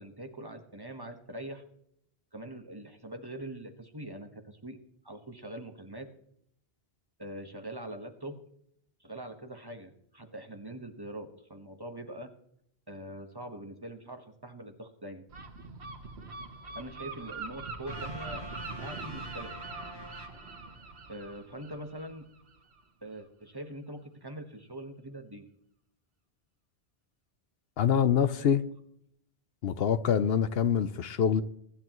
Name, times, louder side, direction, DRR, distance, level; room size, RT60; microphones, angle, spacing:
voice 1, 0.0-1.6 2.3-4.8 5.0-6.1 7.2-8.4 9.0-12.3 12.9-15.2 16.7-18.5 18.8-19.6 21.1-22.2 23.0-25.4, right 1 dB, 20° right, 1.4 m, -43 dB
Gull seagull, 15.3-22.8, right 3 dB, 85° right, 1.5 m, -43 dB
sound 1, 17.9-21.1, left 1 dB, 25° left, 1.4 m, -47 dB
voice 2, 27.8-28.6 29.6-31.4, left 8 dB, 70° left, 0.9 m, -25 dB
23.5 x 11.0 x 3.1 m
omnidirectional pair, 1.1 m